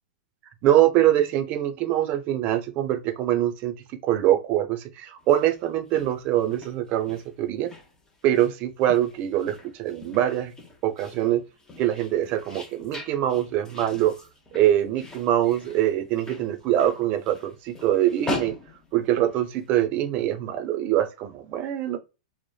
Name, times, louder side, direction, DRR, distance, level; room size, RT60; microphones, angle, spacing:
voice 1, 0.6-3.7 4.0-7.7 8.2-10.5 10.8-11.4 11.8-14.1 14.5-18.5 18.9-22.0, right 12 dB, 40° right, 0.5 m, -23 dB
sound 1, 5.2-19.7, left 2 dB, 15° left, 0.7 m, -41 dB
3.0 x 2.0 x 2.2 m
hypercardioid pair, 105°, 4 cm